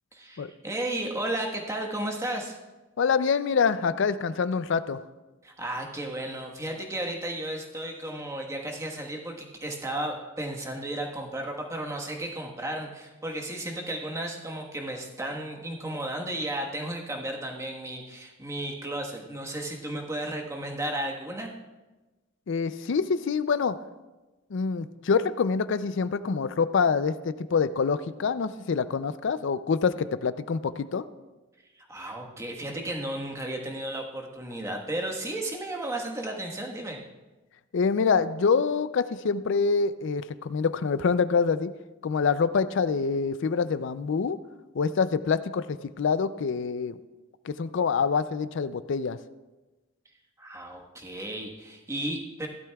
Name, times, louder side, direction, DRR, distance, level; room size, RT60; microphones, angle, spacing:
voice 1, 0.1-2.6 5.4-21.5 31.7-37.0 50.4-52.5, right 1 dB, 15° right, 1 dB, 1.3 m, -34 dB
voice 2, 3.0-5.0 22.5-23.8 24.5-31.0 37.7-41.7 42.0-44.4 44.7-47.0 47.4-49.2, left 5 dB, 60° left, 14 dB, 0.4 m, -26 dB
16.0 x 12.0 x 2.3 m, 1.1 s
head